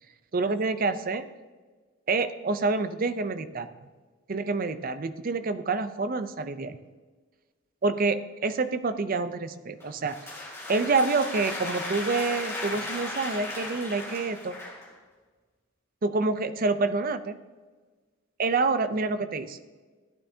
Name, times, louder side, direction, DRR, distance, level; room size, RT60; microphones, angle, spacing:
voice 1, 0.3-1.3 2.1-3.7 4.3-6.8 7.8-10.2 10.7-14.6 16.0-17.4 18.4-19.6, right 3 dB, 40° right, 11 dB, 0.5 m, -27 dB
sound 1, 9.8-14.9, left 2 dB, 10° left, 3.0 m, -36 dB
14.0 x 9.3 x 2.8 m, 1.4 s
head